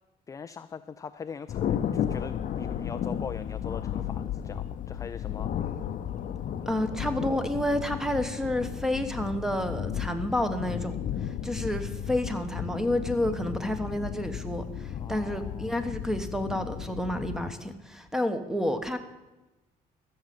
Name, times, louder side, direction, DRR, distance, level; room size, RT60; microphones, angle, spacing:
voice 1, 0.3-5.8 6.6-7.0 14.9-15.8, left 6 dB, 20° left, 11 dB, 0.4 m, -42 dB
Thunder, 1.5-17.5, left 9 dB, 50° left, 0.7 m, -34 dB
voice 2, 6.7-11.0 11.2-19.0, left 1 dB, 5° right, 8 dB, 1.1 m, -30 dB
14.0 x 6.5 x 7.7 m, 1.1 s
cardioid pair, 110°, 17 cm